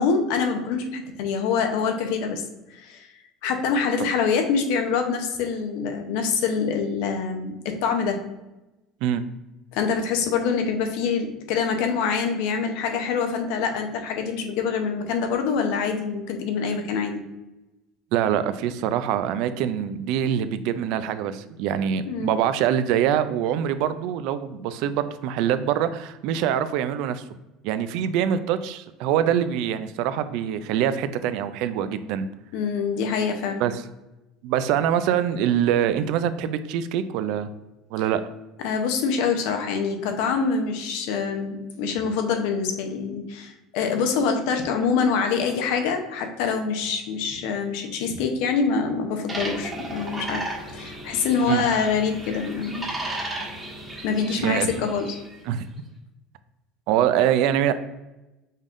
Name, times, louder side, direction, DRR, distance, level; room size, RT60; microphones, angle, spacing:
voice 1, 0.0-2.4 2.7-3.1 3.4-8.2 9.7-17.2 22.1-22.4 32.5-33.6 38.6-50.4 50.7-52.9 54.0-55.2, left 5 dB, 75° left, 5 dB, 0.7 m, -25 dB
voice 2, 18.1-27.2 27.6-32.3 33.6-33.8 34.4-37.5 37.9-38.2 51.5-51.7 54.4-54.7 55.5-55.7 56.9-57.7, right 9 dB, 70° right, 12 dB, 0.3 m, -24 dB
sound 1, 49.3-55.4, right 1 dB, 15° right, 1.2 m, -34 dB
5.4 x 3.5 x 2.5 m, 1.0 s
cardioid pair, 135°, 0 cm